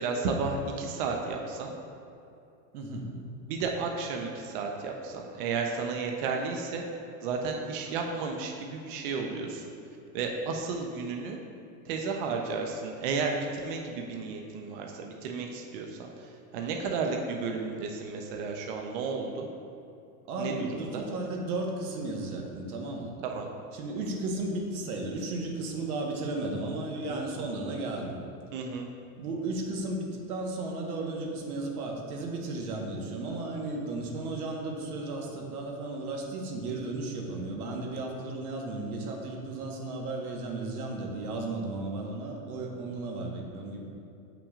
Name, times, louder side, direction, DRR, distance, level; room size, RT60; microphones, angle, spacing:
voice 1, 0.0-1.7 3.5-6.8 7.2-9.6 10.1-11.4 11.9-19.5 20.4-20.7 20.9-21.0 23.2-23.5 27.1-27.2 28.5-28.9, right 4 dB, 40° right, 2 dB, 0.4 m, -33 dB
voice 2, 2.7-3.1 20.3-23.1 23.7-28.1 29.2-43.9, right 2 dB, 85° right, 1 dB, 1.3 m, -34 dB
8.4 x 5.8 x 2.4 m, 2.6 s
supercardioid pair, 170°, 43 cm